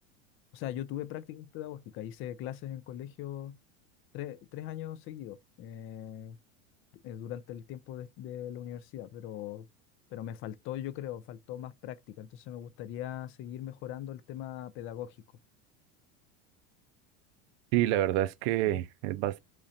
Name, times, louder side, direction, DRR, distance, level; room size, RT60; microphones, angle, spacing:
voice 1, 0.5-3.6 4.1-6.4 7.0-9.7 10.1-15.2 18.7-18.8, left 11 dB, 40° left, 0.4 m, -40 dB
voice 2, 17.7-19.4, right 14 dB, 65° right, 0.5 m, -28 dB
3.7 x 3.1 x 2.7 m
supercardioid pair, 135°, 35 cm